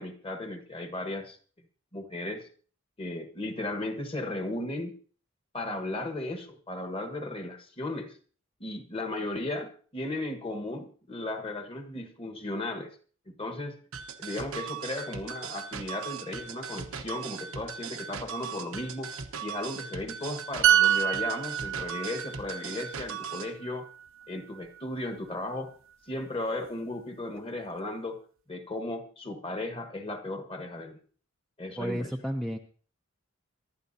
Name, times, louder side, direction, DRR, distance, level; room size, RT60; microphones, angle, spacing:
voice 1, 0.0-1.4 1.9-2.5 3.0-4.9 5.5-8.1 8.6-12.9 13.4-13.8 14.2-19.1 19.4-23.9 24.3-25.7 26.1-28.2 28.5-31.0 31.6-32.1, left 2 dB, 25° left, 7 dB, 1.4 m, -35 dB
sound 1, 13.9-23.5, right 7 dB, 90° right, 1.1 m, -39 dB
sound 2, 20.6-24.2 24.6-24.8, right 10 dB, 65° right, 0.6 m, -27 dB
voice 2, 31.8-32.6, equal, ahead, 3 dB, 0.6 m, -32 dB
23.5 x 11.5 x 2.8 m, 0.42 s
head